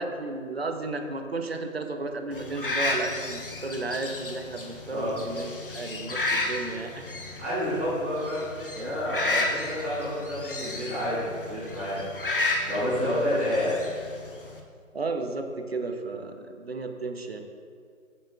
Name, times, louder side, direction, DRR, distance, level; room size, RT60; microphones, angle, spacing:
voice 1, 0.0-7.1 13.0-13.3 14.9-17.4, right 3 dB, 45° right, 5 dB, 0.9 m, -33 dB
sound 1, 2.3-14.6, left 2 dB, 40° left, 0.9 m, -33 dB
voice 2, 7.4-8.5 8.7-12.1 12.7-13.7, equal, 10° right, -14 dB, 1.8 m, -29 dB
14.0 x 7.3 x 2.4 m, 2.1 s
figure-of-eight pair, 160°, 41 cm